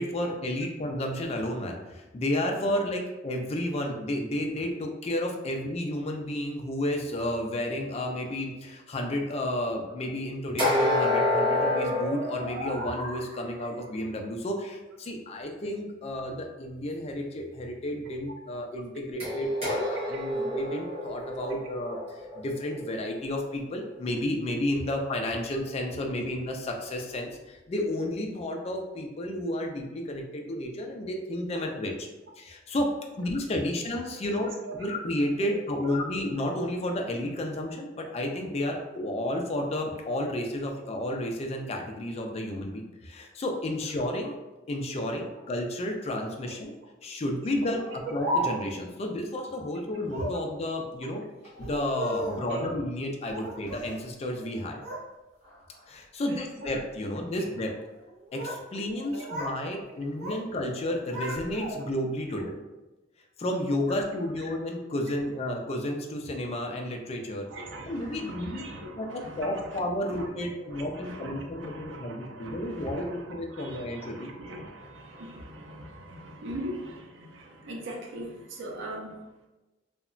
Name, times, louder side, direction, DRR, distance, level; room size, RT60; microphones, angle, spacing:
voice 1, 0.0-32.1 32.4-32.9 33.2-34.5 34.8-44.4 44.7-46.7 47.0-47.8 48.1-51.2 51.6-54.8 55.9-57.7 58.3-62.6 63.4-67.5 67.9-68.6 69.0-74.3, left 1 dB, 35° left, 2 dB, 0.3 m, -32 dB
sound 1, 10.6-13.3 19.2-23.2, left 1 dB, 30° right, 1.0 m, -28 dB
voice 2, 18.0-18.4 19.7-20.2 21.6-21.8 34.3-34.9 35.5-36.2 46.5-46.6 47.6-48.1 50.3-50.4 52.2-52.7 54.6-54.7 56.3-56.7 57.3-57.5 59.1-59.5 63.9-64.0 67.4-69.8 70.1-79.3, right 1 dB, 85° right, 1 dB, 0.5 m, -41 dB
Speech, 47.8-48.9 50.0-50.5 51.4-52.5 53.2-54.0 54.3-55.0 55.4-55.8 56.5-56.8 57.9-58.6 58.9-59.6 59.9-60.4 60.8-62.0, equal, 60° right, 1.3 m, -35 dB
2.8 x 2.1 x 2.4 m, 1.1 s
head